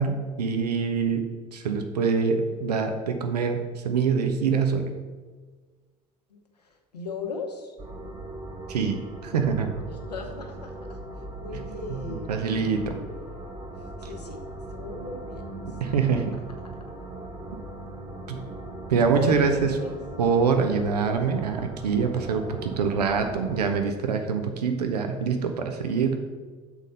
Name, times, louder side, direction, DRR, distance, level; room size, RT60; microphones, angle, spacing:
voice 1, 0.0-3.6 3.8-4.9 8.7-9.7 11.9-13.0 15.8-16.3 18.3-18.4 18.9-19.7 20.2-26.3, right 5 dB, 85° right, 6 dB, 0.6 m, -25 dB
voice 2, 6.3-7.7 9.9-10.9 11.4-13.5 14.0-14.4 14.7-15.6 19.1-20.0, left 5 dB, 90° left, 2 dB, 0.8 m, -37 dB
sound 1, 7.8-23.8, right 2 dB, 25° right, 1.3 m, -39 dB
7.0 x 4.2 x 5.3 m, 1.4 s
figure-of-eight pair, 60°, 20 cm